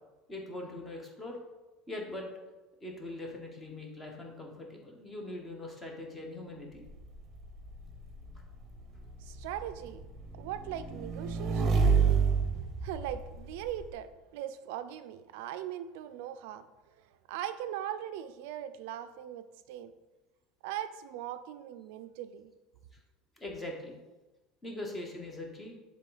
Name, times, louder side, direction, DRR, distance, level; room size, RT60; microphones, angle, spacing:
voice 1, 0.3-1.4 1.9-2.3 2.8-6.8 23.4-23.9 24.6-25.7, left 2 dB, 15° left, 1 dB, 1.1 m, -41 dB
Motorcycle / Engine, 6.8-13.9, right 5 dB, 30° right, 0.8 m, -30 dB
voice 2, 9.2-10.0 10.4-11.8 12.8-16.7 17.0-19.9 20.6-22.5, right 11 dB, 80° right, 11 dB, 0.4 m, -40 dB
7.4 x 3.5 x 3.9 m, 1.1 s
cardioid pair, 150°, 0 cm